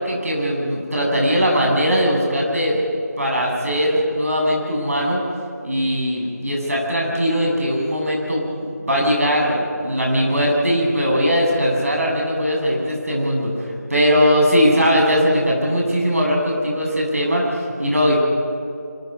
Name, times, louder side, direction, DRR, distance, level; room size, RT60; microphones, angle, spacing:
voice 1, 0.0-2.8 3.2-5.2 5.6-18.2, equal, 55° right, -1 dB, 7.4 m, -20 dB
25.0 x 24.0 x 5.4 m, 2.6 s
figure-of-eight pair, 175°, 9 cm